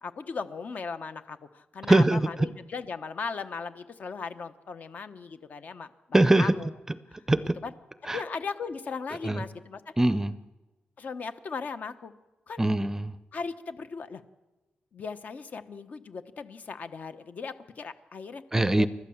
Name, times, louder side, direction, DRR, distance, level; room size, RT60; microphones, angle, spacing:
voice 1, 0.0-6.7 7.6-7.7 8.1-9.8 11.0-12.1 12.5-12.6 13.3-14.2 14.9-18.4 18.8-18.9, left 5 dB, 50° left, 10 dB, 1.1 m, -37 dB
voice 2, 1.9-2.3 6.1-6.5 7.3-7.6 8.1-8.2 9.2-9.4 10.0-10.4 12.6-13.1 18.5-18.9, right 1 dB, 15° right, 14 dB, 0.6 m, -22 dB
29.5 x 12.5 x 7.2 m, 1.1 s
wide cardioid pair, 150°, 3 cm